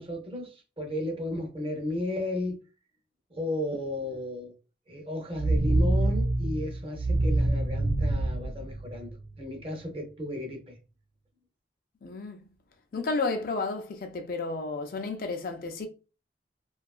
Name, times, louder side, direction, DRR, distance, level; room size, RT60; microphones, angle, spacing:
voice 1, 0.0-2.6 3.3-4.5 4.9-9.1 9.4-10.8, left 1 dB, 30° right, 0.7 m, -34 dB
sound 1, 5.4-9.4, right 2 dB, 85° right, 0.5 m, -26 dB
voice 2, 12.0-12.4 12.9-15.9, left 3 dB, 55° left, 0.4 m, -32 dB
2.7 x 2.3 x 2.3 m
head